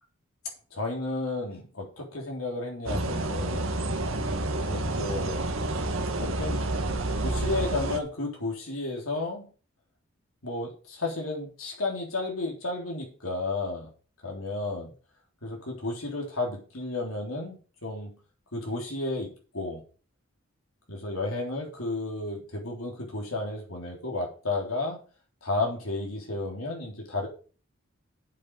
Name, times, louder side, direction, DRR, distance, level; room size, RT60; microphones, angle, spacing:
voice 1, 0.7-3.7 4.7-5.5 6.2-6.7 7.2-9.5 10.4-13.9 14.2-14.9 15.4-18.2 18.5-19.8 20.9-25.0 25.4-27.3, left 2 dB, 85° left, 0 dB, 3.6 m, -32 dB
sound 1, 2.9-8.0, right 2 dB, 80° right, 1.7 m, -29 dB
8.5 x 7.9 x 5.5 m, 0.37 s
head